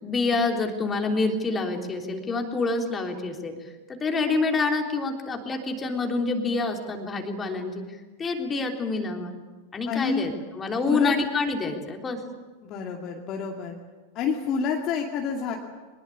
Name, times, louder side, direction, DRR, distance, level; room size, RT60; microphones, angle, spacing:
voice 1, 0.0-3.6 3.9-7.8 8.2-9.3 9.7-12.2, left 3 dB, 20° left, 3 dB, 3.4 m, -27 dB
voice 2, 9.9-10.3 10.8-11.1 12.6-13.7 14.1-15.6, left 6 dB, 35° left, 1 dB, 2.5 m, -28 dB
24.0 x 21.0 x 8.5 m, 1.3 s
figure-of-eight pair, 90°, 0 cm